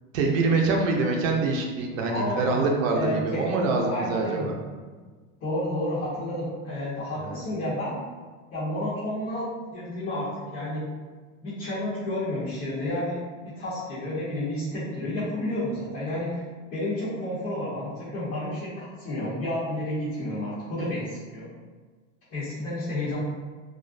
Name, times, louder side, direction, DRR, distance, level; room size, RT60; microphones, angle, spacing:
voice 1, 0.1-4.6 7.2-7.4, right 3 dB, 80° right, 1 dB, 0.6 m, -25 dB
voice 2, 2.1-4.5 5.4-8.0 8.5-10.8 11.4-16.4 16.7-21.5 22.3-23.2, left 1 dB, 30° left, -12 dB, 0.8 m, -31 dB
2.4 x 2.0 x 2.5 m, 1.4 s
supercardioid pair, 135°, 39 cm